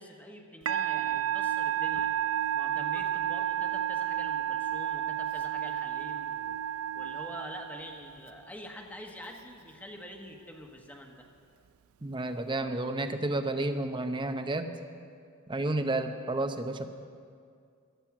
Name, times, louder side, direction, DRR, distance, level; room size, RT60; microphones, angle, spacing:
voice 1, 0.0-2.1 2.5-11.3, left 1 dB, 10° left, 2 dB, 1.2 m, -46 dB
Musical instrument, 0.7-8.3, right 10 dB, 75° right, 0.4 m, -31 dB
voice 2, 12.0-14.7 15.5-16.9, right 2 dB, 20° right, 8 dB, 0.8 m, -31 dB
16.0 x 12.0 x 5.9 m, 2.3 s
head